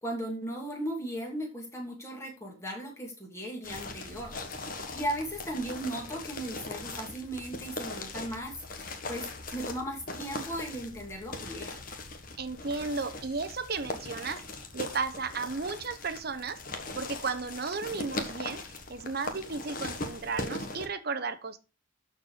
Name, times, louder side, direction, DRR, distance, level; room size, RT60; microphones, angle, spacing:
voice 1, 0.0-11.8, right 1 dB, 15° left, 2.6 m, -37 dB
sound 1, 3.6-20.9, left 2 dB, 40° left, 1.4 m, -40 dB
voice 2, 12.4-14.4 14.7-18.6 18.9-21.6, right 4 dB, 50° right, 0.9 m, -34 dB
12.5 x 4.6 x 4.9 m
head